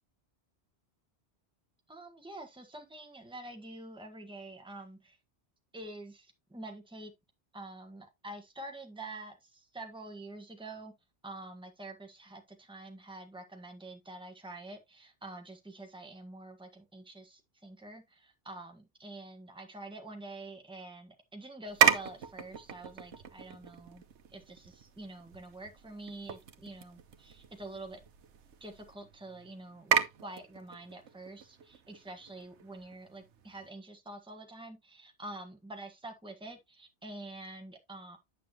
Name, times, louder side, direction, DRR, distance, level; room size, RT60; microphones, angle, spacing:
voice 1, 1.9-5.2 5.7-7.1 7.5-10.9 11.2-24.0 24.3-28.0 28.6-38.2, right 2 dB, 5° right, 1.5 m, -47 dB
sound 1, 21.7-33.7, right 8 dB, 85° right, 1.2 m, -35 dB
9.2 x 6.5 x 3.0 m
omnidirectional pair, 1.1 m